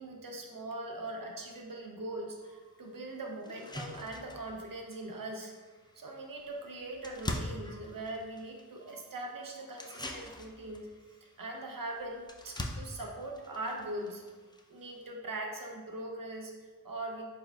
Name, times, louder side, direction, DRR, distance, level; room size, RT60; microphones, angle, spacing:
voice 1, 0.0-5.5 5.9-10.9 11.2-14.2 14.7-17.3, right 2 dB, 75° right, 1 dB, 0.6 m, -41 dB
sound 1, 2.4-2.5 3.0-3.1 3.4-15.1, left 1 dB, 15° left, 0.3 m, -44 dB
4.3 x 3.6 x 2.3 m, 1.5 s
wide cardioid pair, 40°, 34 cm